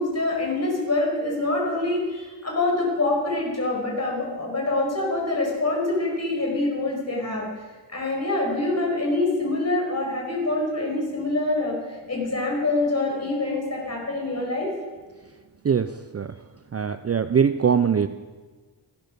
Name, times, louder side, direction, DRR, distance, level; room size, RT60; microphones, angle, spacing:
voice 1, 0.0-7.4 7.9-11.8 12.1-14.7, left 2 dB, 35° left, -2 dB, 5.3 m, -25 dB
voice 2, 15.6-16.3 16.7-18.1, right 7 dB, 35° right, 11 dB, 0.4 m, -22 dB
14.5 x 10.5 x 6.7 m, 1.4 s
wide cardioid pair, 145°, 44 cm